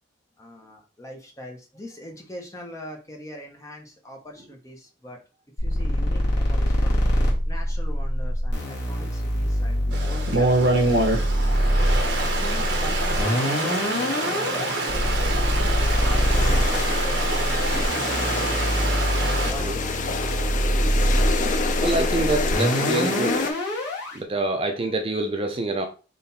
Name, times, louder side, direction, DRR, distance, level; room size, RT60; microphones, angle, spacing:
voice 1, 0.4-5.2 5.6-7.0 7.4-11.3 11.9-15.4 15.7-18.6 19.2-20.2, equal, 15° left, 1.0 m, -41 dB
sound 1, 5.6-24.2, equal, 60° left, 1.9 m, -24 dB
Stream, 9.9-19.5, right 2 dB, 65° right, 1.0 m, -26 dB
sound 2, 15.9-23.5, left 3 dB, 45° left, 0.5 m, -29 dB
voice 2, 21.8-23.4 24.1-25.9, right 2 dB, 30° right, 0.5 m, -26 dB
3.8 x 3.3 x 4.2 m
head